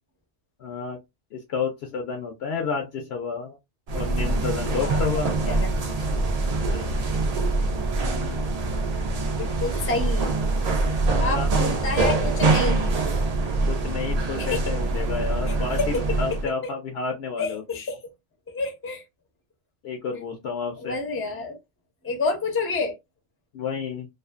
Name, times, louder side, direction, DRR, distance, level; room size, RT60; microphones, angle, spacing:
voice 1, 0.6-1.0 1.3-3.6 3.9-5.3 7.9-8.5 11.1-11.5 13.6-15.8 16.2-17.6 19.8-20.9 23.5-24.1, left 5 dB, 70° left, 0.8 m, -30 dB
sound 1, 3.9-16.5, right 3 dB, 60° right, 0.4 m, -24 dB
voice 2, 4.7-5.7 6.0-6.1 6.7-6.9 9.4-10.3 11.2-12.9 14.4-14.6 15.5-16.0 16.6-16.7 17.4-18.0 18.5-19.0 20.1-20.2 20.8-21.6 22.0-22.9, left 3 dB, 15° left, 0.5 m, -29 dB
2.5 x 2.4 x 2.3 m
omnidirectional pair, 1.2 m